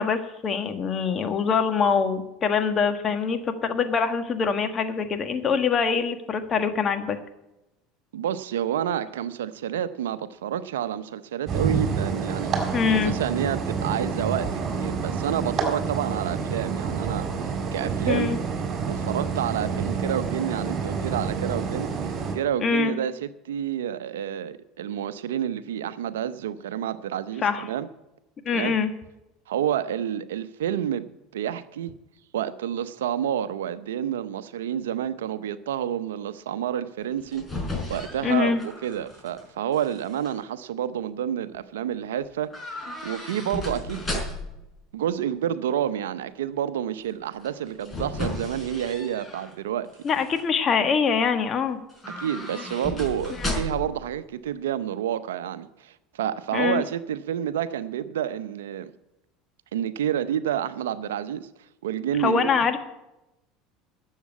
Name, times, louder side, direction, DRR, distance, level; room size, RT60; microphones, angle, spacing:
voice 1, 0.0-7.2 12.7-13.1 18.1-18.4 22.6-23.0 27.4-27.6 28.4-28.9 38.2-38.6 50.0-51.8 53.4-53.5 56.5-56.8 62.2-62.8, left 6 dB, 40° left, 8 dB, 1.6 m, -24 dB
voice 2, 8.1-14.5 14.8-18.3 18.9-21.9 22.3-27.9 28.5-28.7 29.5-31.1 31.3-31.9 32.3-37.4 37.9-44.2 44.9-49.9 52.2-58.9 59.7-61.5 61.8-62.7, right 10 dB, 85° right, 14 dB, 0.6 m, -29 dB
sound 1, 11.5-22.4, right 5 dB, 40° right, 4.0 m, -28 dB
sound 2, 37.0-39.4 39.7-40.3 42.5-44.6 47.4-49.5 49.9-50.4 51.9-54.0 54.2-54.3, left 1 dB, 15° left, 5.0 m, -34 dB
12.0 x 7.4 x 8.4 m, 0.93 s
hypercardioid pair, 85°, 0 cm